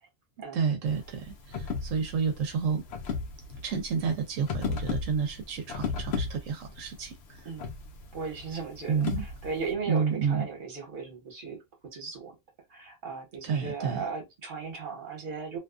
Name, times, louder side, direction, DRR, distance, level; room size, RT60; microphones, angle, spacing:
voice 1, 0.5-2.8 3.6-7.4 8.9-9.2 9.9-10.5 13.4-14.0, right 6 dB, 80° right, 1.0 m, -30 dB
sound 1, 0.9-9.7, left 5 dB, 60° left, 0.8 m, -36 dB
voice 2, 8.1-11.6 11.9-12.3 12.7-15.6, right 5 dB, 45° right, 1.1 m, -37 dB
2.6 x 2.3 x 2.3 m
omnidirectional pair, 1.3 m